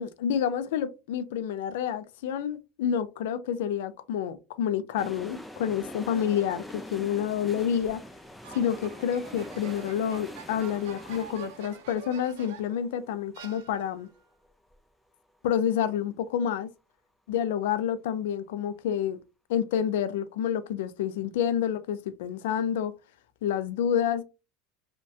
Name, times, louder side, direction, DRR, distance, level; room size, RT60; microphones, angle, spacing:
voice 1, 0.0-8.0 8.5-14.1 15.4-16.7 17.3-19.2 19.5-22.9 23.4-24.2, left 9 dB, 85° left, 0.4 m, -28 dB
sound 1, 5.0-14.8 15.1-15.2, left 1 dB, 5° left, 0.4 m, -45 dB
sound 2, 8.4-12.8 13.3-14.1, right 9 dB, 80° right, 0.5 m, -47 dB
3.1 x 2.2 x 2.7 m
supercardioid pair, 130°, 0 cm